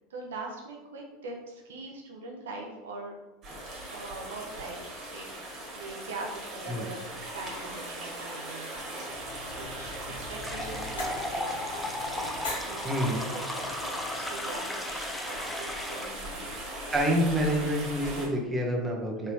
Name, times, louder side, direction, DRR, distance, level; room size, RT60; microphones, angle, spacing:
voice 1, 0.1-3.1 3.9-5.3 5.7-9.1 9.6-11.6 12.0-12.9 13.2-14.0 14.3-15.7 15.9-16.5, right 3 dB, 70° right, 0 dB, 0.6 m, -42 dB
sound 1, 3.4-18.3, right 1 dB, 35° right, 1.5 m, -39 dB
sound 2, 9.1-14.4, left 1 dB, 75° left, 1.1 m, -43 dB
sound 3, 10.3-16.3, left 2 dB, 10° left, 0.4 m, -36 dB
voice 2, 12.8-13.2 16.9-19.3, equal, 15° right, 0 dB, 0.8 m, -27 dB
4.1 x 3.1 x 2.7 m, 1.1 s
figure-of-eight pair, 75°, 0 cm